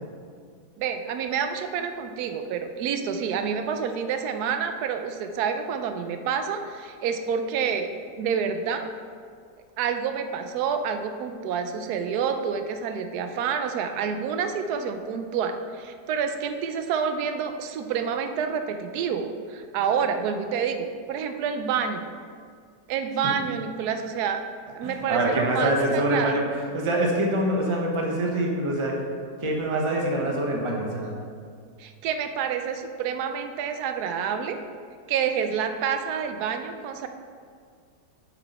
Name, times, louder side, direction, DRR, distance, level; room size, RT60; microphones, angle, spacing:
voice 1, 0.8-7.9 8.2-8.9 9.8-22.0 22.9-24.5 24.7-26.4 31.8-34.6 35.1-37.1, right 7 dB, 70° right, 7 dB, 1.1 m, -28 dB
voice 2, 24.8-26.5 26.7-29.0 29.4-31.2, right 1 dB, 25° right, -1 dB, 0.7 m, -25 dB
7.5 x 6.0 x 4.2 m, 2.1 s
omnidirectional pair, 1.9 m